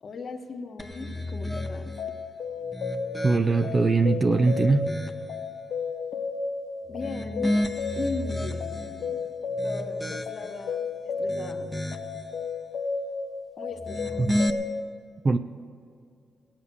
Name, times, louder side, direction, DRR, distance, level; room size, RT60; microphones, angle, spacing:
voice 1, 0.0-1.9 6.9-7.5 7.9-9.2 9.6-10.8 11.2-11.7 13.6-14.3, left 3 dB, 45° left, 5 dB, 1.3 m, -38 dB
sound 1, 0.8-2.1 2.6-3.8 4.3-5.4 6.9-9.0 9.5-10.6 11.1-12.2 13.7-14.5, left 1 dB, 5° left, 0.9 m, -32 dB
sound 2, 1.6-14.8, left 4 dB, 65° left, 0.8 m, -33 dB
voice 2, 3.2-4.9 14.2-14.4 15.2-15.4, right 3 dB, 30° right, 9 dB, 0.4 m, -22 dB
17.0 x 8.9 x 6.9 m, 2.3 s
cardioid pair, 110°, 0 cm